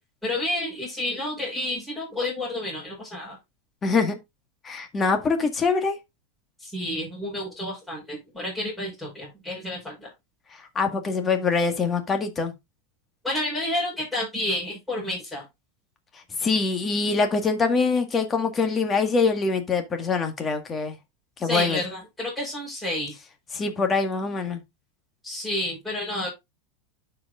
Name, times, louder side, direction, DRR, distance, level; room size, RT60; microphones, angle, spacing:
voice 1, 0.2-3.4 6.6-10.1 13.2-15.4 21.4-23.1 25.2-26.3, left 1 dB, ahead, 5.1 m, -30 dB
voice 2, 3.8-4.2 4.6-6.0 10.8-12.5 16.4-21.0 21.4-21.8 23.5-24.6, left 4 dB, 20° left, 1.7 m, -24 dB
12.0 x 4.9 x 2.5 m
supercardioid pair, 140°, 0 cm